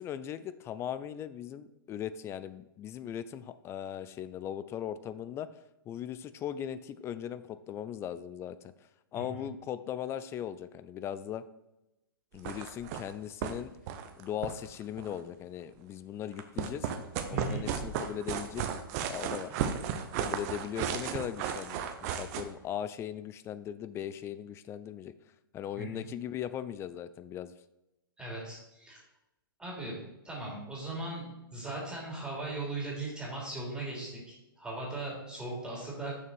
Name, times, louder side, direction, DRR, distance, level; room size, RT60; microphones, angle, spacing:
voice 1, 0.0-5.5 5.9-8.6 9.1-11.4 12.3-13.7 14.2-16.9 17.3-18.8 19.1-19.5 20.2-25.1 25.5-27.5, left 10 dB, 20° left, 14 dB, 0.4 m, -39 dB
sound 1, 12.3-13.1 13.4-13.5 13.8-15.2 16.3-22.4, right 8 dB, 45° right, 0.9 m, -34 dB
voice 2, 17.3-17.6 25.8-26.0 28.2-29.0 29.6-31.2 31.5-34.2 34.6-36.1, right 2 dB, 5° right, -5 dB, 2.9 m, -38 dB
6.7 x 6.1 x 4.4 m, 0.93 s
hypercardioid pair, 120°, 12 cm